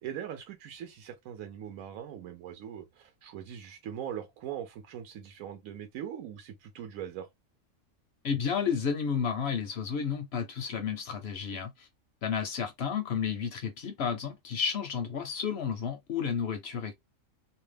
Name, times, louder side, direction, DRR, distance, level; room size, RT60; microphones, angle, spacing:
voice 1, 0.0-7.3, right 9 dB, 80° right, 1.0 m, -41 dB
voice 2, 8.2-11.9 12.2-16.9, left 6 dB, 65° left, 0.7 m, -32 dB
2.6 x 2.1 x 3.2 m
omnidirectional pair, 1.4 m